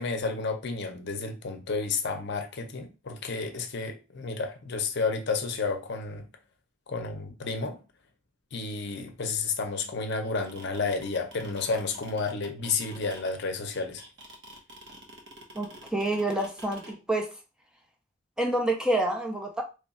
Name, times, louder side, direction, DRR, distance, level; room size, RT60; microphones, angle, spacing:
voice 1, 0.0-6.3 6.9-7.8 8.5-14.0, left 4 dB, 60° left, 0.6 m, -31 dB
sound 1, 10.2-16.9, right 1 dB, 60° right, 1.0 m, -47 dB
voice 2, 15.5-17.3 18.4-19.6, right 1 dB, 5° right, 0.5 m, -28 dB
3.1 x 2.3 x 4.1 m
head